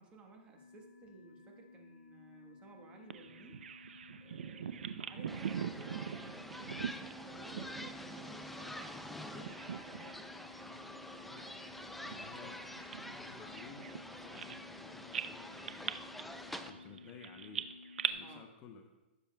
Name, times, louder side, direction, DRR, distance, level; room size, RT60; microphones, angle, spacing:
voice 1, 0.0-3.6 4.2-10.3 12.0-12.5 18.2-18.5, right 3 dB, 20° right, 2 dB, 1.2 m, -56 dB
sound 1, 0.5-18.4, left 4 dB, 85° left, 0.7 m, -56 dB
Bird vocalization bird call bird song, 3.1-9.1 9.3-10.3 10.6-10.8 11.4-14.8 15.1-18.1, right 8 dB, 85° right, 0.5 m, -42 dB
sound 2, 5.3-16.7, left 1 dB, ahead, 0.3 m, -47 dB
voice 2, 10.6-12.6 13.1-16.0 16.6-17.7 18.1-18.9, left 6 dB, 25° left, 5 dB, 0.7 m, -55 dB
15.0 x 7.1 x 2.2 m, 1.1 s
hypercardioid pair, 155°, 6 cm